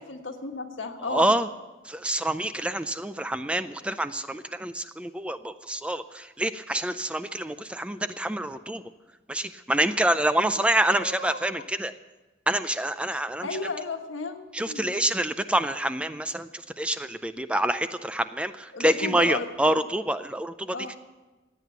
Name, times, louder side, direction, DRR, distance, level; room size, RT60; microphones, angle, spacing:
voice 1, 0.1-1.3 10.5-11.4 13.4-14.9 18.7-19.8 20.7-20.9, left 3 dB, 90° left, 4 dB, 1.6 m, -34 dB
voice 2, 1.1-1.5 1.8-8.8 9.3-11.9 12.5-13.5 14.5-20.9, right 1 dB, 5° right, 11 dB, 0.4 m, -27 dB
16.5 x 9.2 x 8.1 m, 1.2 s
head